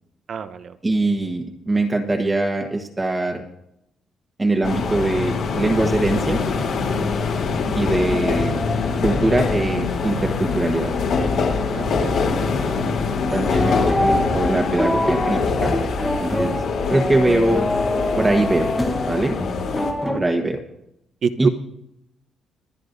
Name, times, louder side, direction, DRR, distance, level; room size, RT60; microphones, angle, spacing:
voice 1, 0.3-0.6 11.7-12.5 20.0-20.2 21.2-21.5, right 6 dB, 55° right, 11 dB, 0.8 m, -26 dB
voice 2, 0.8-3.4 4.4-6.4 7.7-8.7 9.0-10.9 13.3-15.7 16.0-16.5 16.9-17.7 18.2-18.7 19.0-19.4 20.1-20.6 21.4-21.5, right 2 dB, 20° right, 2 dB, 1.3 m, -22 dB
sound 1, 4.6-19.9, left 4 dB, 75° left, 3.1 m, -24 dB
sound 2, 13.3-20.2, left 1 dB, 10° left, 1.1 m, -25 dB
24.5 x 9.7 x 2.7 m, 0.81 s
cardioid pair, 90°, 0 cm